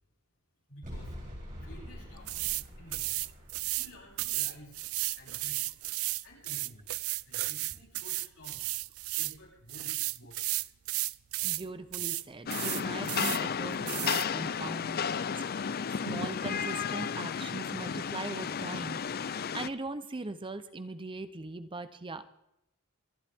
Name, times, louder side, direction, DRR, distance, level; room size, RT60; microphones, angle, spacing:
voice 1, 0.7-1.2 1.6-3.1 3.8-4.8 5.1-5.7 6.2-6.9 7.3-8.7 9.2-10.6, equal, 70° left, -3 dB, 7.0 m, -52 dB
sound 1, 0.8-6.0, equal, 40° right, 7.7 m, -47 dB
sound 2, 2.3-2.6 2.9-3.9 4.2-9.4 9.7-11.6 11.9-12.2 12.5-13.4 13.9-14.3, right 19 dB, 75° right, 0.4 m, -33 dB
voice 2, 11.4-15.4 16.1-19.0 19.2-22.2, right 2 dB, 25° right, 12 dB, 0.7 m, -40 dB
Rain, 12.5-19.7, left 7 dB, 45° left, 0.5 m, -33 dB
26.0 x 11.5 x 3.6 m, 0.83 s
head